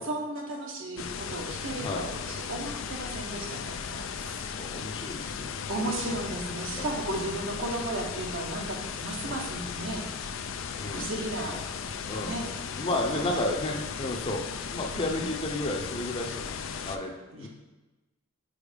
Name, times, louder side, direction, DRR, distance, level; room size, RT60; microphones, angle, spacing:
voice 1, 0.0-4.0 5.7-10.0 10.9-11.6 12.2-12.4 13.1-13.3 14.9-15.2 17.3-17.5, right 1 dB, 65° right, 1 dB, 1.1 m, -34 dB
sound 1, 1.0-17.0, left 6 dB, 70° left, 0.4 m, -36 dB
voice 2, 4.2-6.2 6.8-6.9 7.2-7.3 9.2-9.3 10.8-11.1 12.1-12.4 12.8-17.1 17.4-17.5, left 1 dB, 25° left, 1 dB, 0.7 m, -33 dB
5.0 x 4.6 x 5.2 m, 1.1 s
head